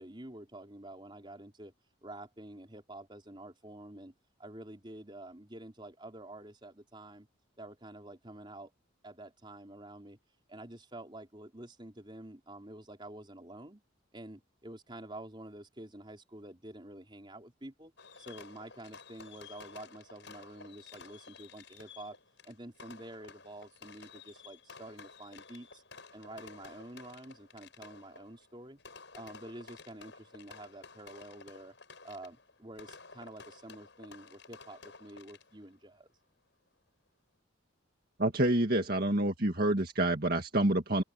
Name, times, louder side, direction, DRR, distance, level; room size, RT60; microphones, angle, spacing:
voice 1, 0.0-1.7 2.0-4.1 4.4-7.3 7.6-8.7 9.0-10.2 10.5-13.8 14.1-17.9 18.2-22.2 22.4-25.8 26.1-28.8 29.1-31.8 32.0-36.1, right 1 dB, 25° right, 4.2 m, -48 dB
Fireworks, 18.0-35.7, left 4 dB, 65° left, 7.0 m, -53 dB
voice 2, 38.2-41.0, right 1 dB, 50° right, 2.0 m, -28 dB
open air
head